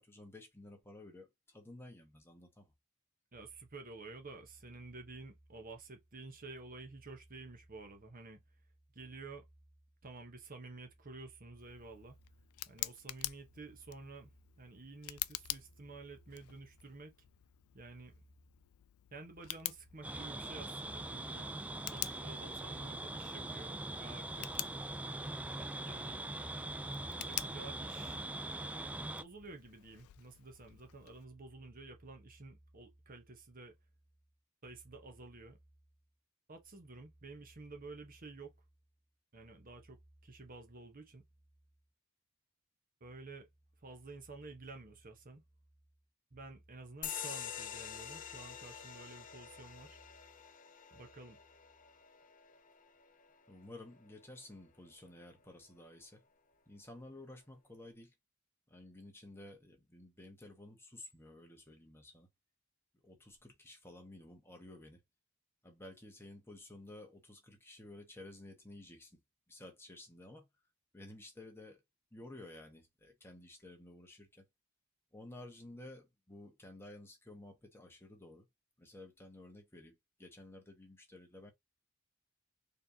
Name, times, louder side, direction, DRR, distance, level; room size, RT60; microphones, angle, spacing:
voice 1, 0.0-2.7 53.5-56.2 56.7-58.1 58.7-62.3 63.0-65.0 65.6-69.2 69.5-70.5 70.9-71.8 72.1-74.4 75.1-78.5 78.8-81.5, left 1 dB, 10° left, 1.2 m, -53 dB
voice 2, 3.3-8.4 8.9-9.4 10.0-12.2 12.7-17.1 17.7-18.2 19.1-21.5 21.9-24.5 25.8-26.2 27.3-28.2 29.2-33.8 34.6-35.6 36.5-38.5 39.3-41.2 43.0-43.5 43.8-45.4 46.3-50.0 50.9-51.4, right 3 dB, 40° right, 1.1 m, -51 dB
Tick, 11.6-31.2, left 17 dB, 85° left, 0.3 m, -48 dB
sound 1, 20.0-29.2, right 2 dB, 5° right, 0.3 m, -42 dB
sound 2, 47.0-54.1, left 8 dB, 40° left, 0.6 m, -47 dB
4.4 x 3.4 x 2.8 m
head